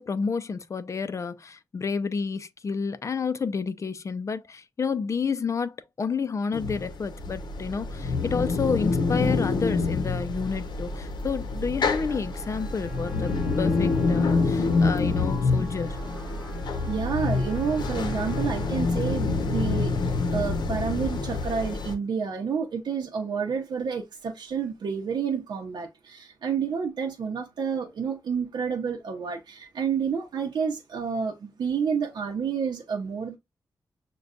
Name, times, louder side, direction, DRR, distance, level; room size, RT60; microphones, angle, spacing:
voice 1, 0.0-16.0, left 5 dB, 45° left, 0.4 m, -30 dB
sound 1, 6.5-21.9, left 3 dB, 80° left, 0.7 m, -27 dB
Trumpet, 12.1-19.0, right 1 dB, 15° right, 1.2 m, -47 dB
voice 2, 16.9-33.4, right 6 dB, 80° right, 0.7 m, -29 dB
6.4 x 2.3 x 2.4 m
wide cardioid pair, 120°, 7 cm